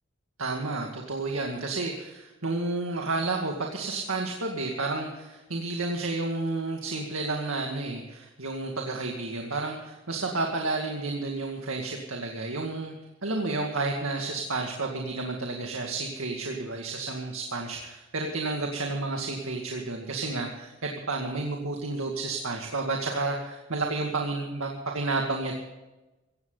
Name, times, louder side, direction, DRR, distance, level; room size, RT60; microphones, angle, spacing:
voice 1, 0.4-12.9 13.2-25.5, right 3 dB, 90° right, 1 dB, 2.1 m, -31 dB
17.0 x 16.0 x 4.0 m, 1.1 s
head